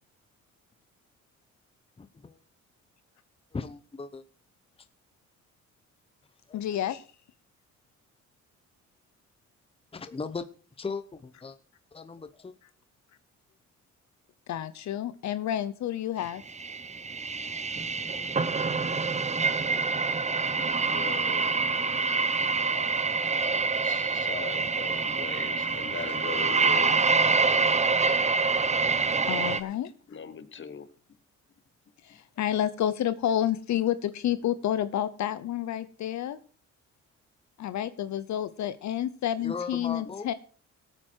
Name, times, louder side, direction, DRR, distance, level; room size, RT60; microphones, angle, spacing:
voice 1, 2.0-2.4 3.5-4.2 6.5-6.6 9.9-10.4 10.8-11.6 11.9-12.5 39.4-40.3, left 4 dB, 20° left, 0.9 m, -37 dB
voice 2, 6.5-7.0 14.5-16.4 29.2-29.9 32.0-36.4 37.6-40.3, left 11 dB, 70° left, 0.9 m, -29 dB
sound 1, 16.5-29.6, right 4 dB, 25° right, 1.1 m, -26 dB
voice 3, 20.8-21.5 22.5-23.1 23.3-23.4 23.8-27.4 30.1-30.9 32.1-32.2, left 6 dB, 40° left, 1.4 m, -40 dB
17.0 x 9.0 x 4.6 m
cardioid pair, 90°, 30 cm